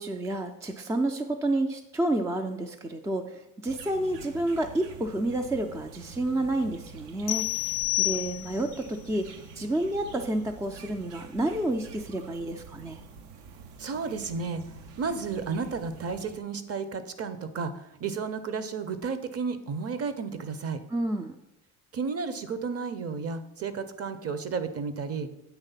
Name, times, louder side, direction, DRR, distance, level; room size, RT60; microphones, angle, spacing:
voice 1, 0.0-3.3 3.6-7.7 8.0-9.3 9.6-13.0 20.9-21.4, right 1 dB, 10° right, 5 dB, 0.3 m, -29 dB
Lake Murray SC, 3.7-16.4, right 5 dB, 70° right, 0.8 m, -47 dB
sound 1, 7.3-8.8, left 22 dB, 55° left, 0.5 m, -29 dB
voice 2, 13.8-14.6 15.0-20.8 21.9-25.3, right 5 dB, 35° right, 11 dB, 0.7 m, -32 dB
8.2 x 3.2 x 5.7 m, 0.86 s
hypercardioid pair, 65°, 45 cm